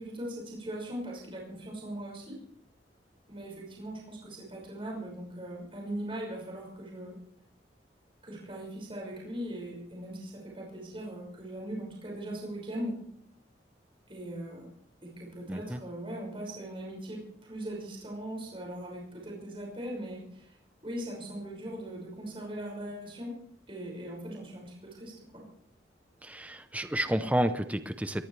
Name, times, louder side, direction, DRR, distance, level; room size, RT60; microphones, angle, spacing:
voice 1, 0.0-2.4 3.3-7.2 8.2-12.9 14.1-14.7 15.0-20.6 20.8-23.4 23.7-25.4, right 1 dB, 30° right, -2 dB, 5.9 m, -40 dB
voice 2, 15.5-15.8 26.2-28.2, right 1 dB, 10° right, 9 dB, 0.7 m, -30 dB
22.5 x 18.5 x 3.3 m, 0.67 s
head